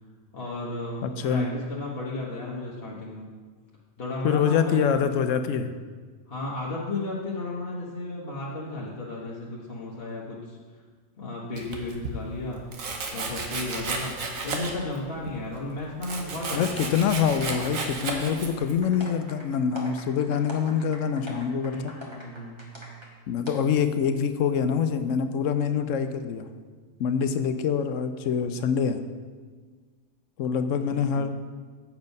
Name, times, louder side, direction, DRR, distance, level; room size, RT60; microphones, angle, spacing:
voice 1, 0.3-3.3 4.0-5.0 6.3-10.6 11.2-12.6 13.1-14.2 14.4-16.9 21.7-22.9 30.7-31.3, left 2 dB, 50° left, -5 dB, 1.3 m, -34 dB
voice 2, 1.0-1.5 4.2-5.7 16.5-21.9 23.3-26.5 27.0-29.0 30.4-31.3, left 7 dB, 75° left, 9 dB, 0.9 m, -25 dB
Domestic sounds home sounds, 11.6-12.2 12.7-15.0 15.3-18.8, right 3 dB, 85° right, 1.4 m, -33 dB
sound 1, 17.2-23.1 23.5-23.6, left 1 dB, 20° right, 1.3 m, -43 dB
7.5 x 7.1 x 5.3 m, 1.5 s
omnidirectional pair, 1.4 m